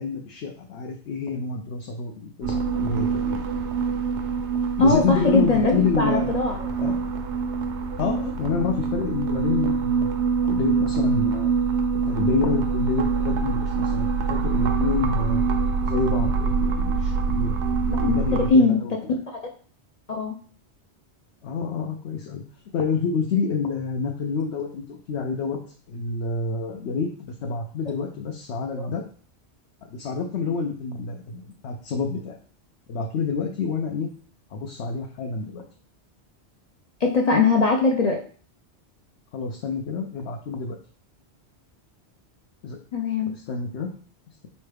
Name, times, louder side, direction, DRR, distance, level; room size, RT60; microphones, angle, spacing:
voice 1, 0.0-3.4 4.8-6.3 6.8-7.0 8.0-10.1 10.4-11.5 12.1-15.4 15.8-18.9 21.4-22.4 22.7-25.6 25.9-29.1 29.8-32.3 32.9-34.1 34.5-35.6 39.3-40.8 42.6-42.8 43.3-43.9, left 4 dB, 75° left, 2 dB, 0.9 m, -28 dB
sound 1, 2.4-18.5, right 5 dB, 80° right, 0.9 m, -25 dB
voice 2, 4.8-6.7 18.0-18.9 19.3-19.4 20.1-20.3 37.0-38.2 42.9-43.3, left 4 dB, 50° left, 1 dB, 0.5 m, -21 dB
4.4 x 3.1 x 3.3 m, 0.42 s
omnidirectional pair, 1.2 m